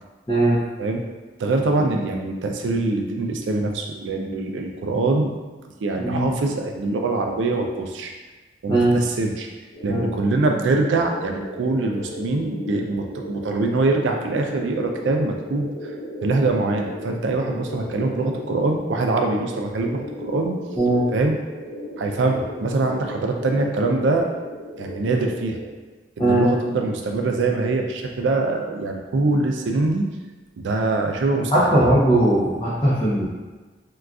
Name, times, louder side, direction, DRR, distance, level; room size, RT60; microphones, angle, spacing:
voice 1, 0.3-0.6 6.0-6.3 8.7-9.0 9.9-10.1 20.8-21.0 26.2-26.5 31.5-33.2, right 1 dB, 25° left, -10 dB, 0.6 m, -19 dB
voice 2, 1.4-5.3 5.8-8.1 8.6-9.5 9.8-15.9 16.2-20.6 21.1-21.4 22.0-24.3 24.8-25.6 26.2-30.1 30.6-31.7, right 3 dB, 90° right, 3 dB, 0.4 m, -23 dB
sound 1, 9.7-25.7, equal, 65° left, 0.7 m, -36 dB
3.7 x 2.3 x 2.3 m, 1.3 s
head